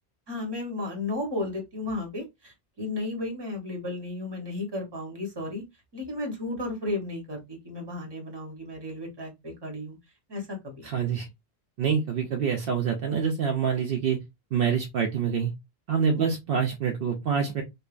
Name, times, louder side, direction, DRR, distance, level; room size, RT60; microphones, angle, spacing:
voice 1, 0.3-5.6 5.9-10.0 10.3-10.8 16.1-16.3, left 2 dB, 25° right, 0.9 m, -34 dB
voice 2, 10.8-11.3 11.8-14.2 14.5-15.5 15.9-17.6, right 7 dB, 70° right, 0.7 m, -26 dB
3.2 x 2.2 x 2.3 m
omnidirectional pair, 1.1 m